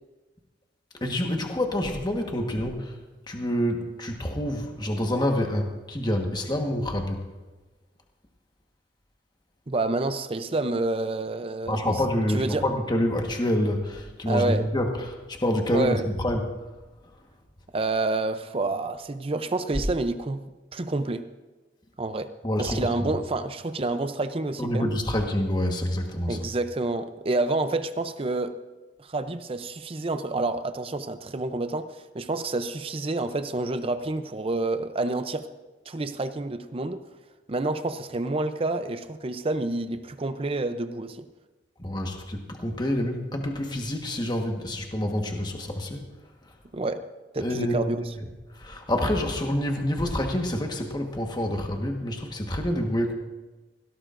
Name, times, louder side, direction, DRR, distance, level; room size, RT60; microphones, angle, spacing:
voice 1, 1.0-2.9 3.3-7.2 11.7-16.5 22.4-22.9 24.6-26.4 41.8-46.1 47.4-48.2 48.5-53.1, left 1 dB, 25° left, 2 dB, 1.3 m, -27 dB
voice 2, 9.7-12.0 12.3-12.6 14.3-14.6 15.7-16.0 17.7-20.4 20.7-21.3 22.0-22.3 22.6-25.0 26.3-28.6 29.0-35.5 35.9-37.0 37.5-41.3 46.7-47.0 47.3-48.1, right 2 dB, 35° right, 10 dB, 0.6 m, -28 dB
17.5 x 17.0 x 2.6 m, 1.2 s
head